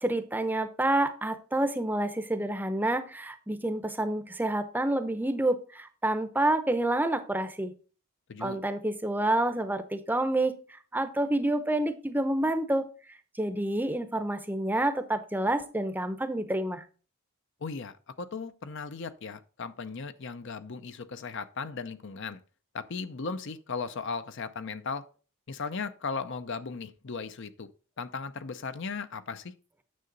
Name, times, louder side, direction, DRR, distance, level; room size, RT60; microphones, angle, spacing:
voice 1, 0.0-7.7 8.4-10.5 10.9-12.9 13.4-16.8, right 1 dB, 10° right, 0.7 m, -28 dB
voice 2, 17.6-22.4 22.7-25.1 25.5-27.7 28.0-29.5, left 4 dB, 55° left, 0.6 m, -37 dB
9.5 x 6.7 x 3.9 m
head